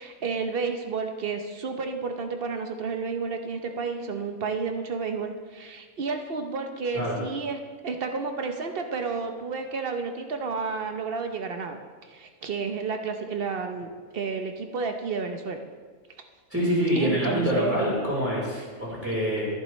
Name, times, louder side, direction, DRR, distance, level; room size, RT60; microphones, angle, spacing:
voice 1, 0.0-7.6 7.8-11.8 12.1-13.9 14.1-15.6 17.0-17.8, right 5 dB, 50° right, 5 dB, 0.9 m, -31 dB
voice 2, 16.5-19.5, equal, 10° right, -6 dB, 3.6 m, -26 dB
11.0 x 11.0 x 3.1 m, 1.5 s
omnidirectional pair, 1.5 m